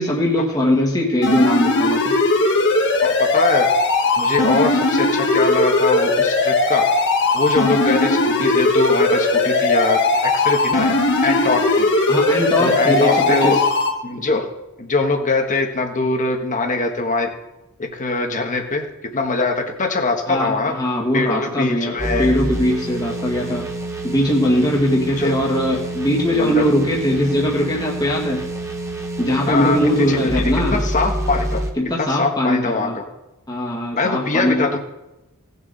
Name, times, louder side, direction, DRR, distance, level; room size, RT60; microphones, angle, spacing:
voice 1, 0.0-2.2 12.1-13.6 20.3-23.7 24.0-28.5 29.2-30.8 31.8-33.0 33.5-34.7, left 1 dB, 20° left, -3 dB, 1.7 m, -20 dB
sound 1, 1.2-13.9, left 2 dB, 55° left, 1.7 m, -18 dB
voice 2, 3.0-3.7 4.2-6.8 7.3-11.0 11.2-11.9 12.6-13.6 14.0-14.5 14.8-17.3 17.9-20.7 21.1-22.3 25.2-25.3 26.3-26.7 29.5-29.8 30.1-31.6 32.0-33.0 33.9-34.8, left 3 dB, 35° left, 4 dB, 1.4 m, -22 dB
sound 2, 22.0-31.7, right 1 dB, 15° right, 1.1 m, -27 dB
17.5 x 6.9 x 4.1 m, 0.98 s
head